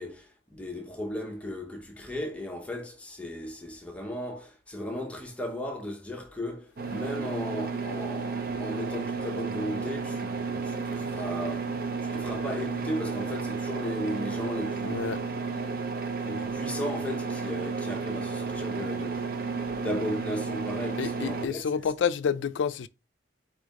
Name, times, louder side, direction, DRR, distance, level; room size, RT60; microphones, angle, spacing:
voice 1, 0.0-11.7 12.0-15.4 16.2-19.3 19.8-21.6, left 1 dB, 5° left, 0.8 m, -36 dB
sound 1, 6.8-21.5, right 4 dB, 55° right, 0.5 m, -32 dB
voice 2, 14.8-15.2 21.0-22.9, left 7 dB, 85° left, 0.4 m, -29 dB
4.3 x 3.4 x 3.6 m
head